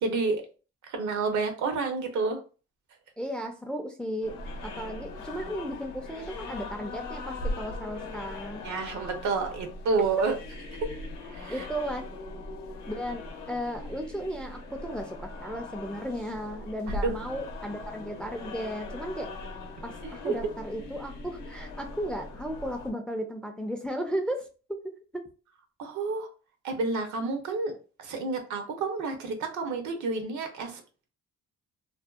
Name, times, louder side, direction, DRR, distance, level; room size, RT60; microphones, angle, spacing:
voice 1, 0.0-0.4 0.9-2.4 8.6-10.3 10.8-10.9 11.3-11.7 16.9-17.2 20.0-20.3 25.8-26.3 26.6-27.7 28.0-30.8, right 4 dB, 75° right, 5 dB, 0.7 m, -29 dB
voice 2, 3.2-4.4 4.6-8.6 11.5-12.1 12.9-19.3 19.8-24.8 25.1-25.2, equal, 5° left, 5 dB, 0.3 m, -35 dB
sound 1, 4.2-22.9, left 2 dB, 90° left, 0.6 m, -40 dB
2.6 x 2.1 x 2.3 m, 0.35 s
cardioid pair, 90°, 30 cm